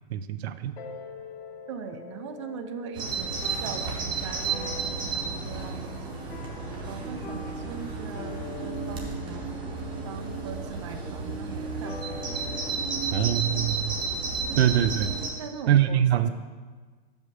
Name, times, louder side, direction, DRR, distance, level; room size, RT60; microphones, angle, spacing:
voice 1, 0.1-0.8 13.1-14.0 14.6-15.1 15.7-16.3, right 10 dB, 90° right, 11 dB, 0.5 m, -23 dB
sound 1, 0.8-15.5, left 6 dB, 75° left, 1.1 m, -45 dB
voice 2, 1.7-6.1 6.9-9.5 10.0-12.0 14.5-14.7 15.4-16.3, right 7 dB, 30° right, 8 dB, 0.4 m, -40 dB
Bird vocalization bird call bird song, 3.0-15.3, right 4 dB, 15° right, 0.8 m, -32 dB
6.3 x 5.3 x 6.1 m, 1.4 s
supercardioid pair, 165°, 31 cm